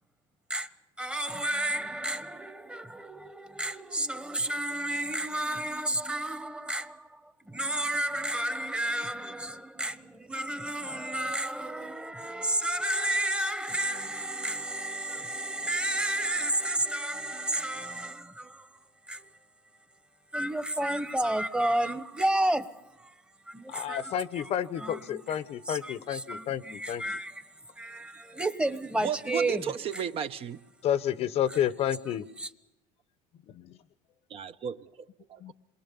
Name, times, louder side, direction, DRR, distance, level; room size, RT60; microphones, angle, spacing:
voice 1, 1.0-18.7 19.1-19.3 20.3-23.1 23.5-24.5 24.8-25.4 25.6-27.5 27.8-29.6 31.5-31.6 32.4-32.5, right 1 dB, 5° right, 1.2 m, -31 dB
voice 2, 23.7-27.0 30.8-32.2 33.5-33.7 35.4-35.5, left 10 dB, 45° left, 0.9 m, -30 dB
voice 3, 29.0-30.6 34.3-35.5, right 8 dB, 45° right, 0.9 m, -34 dB
27.0 x 22.5 x 7.0 m
cardioid pair, 135°, 14 cm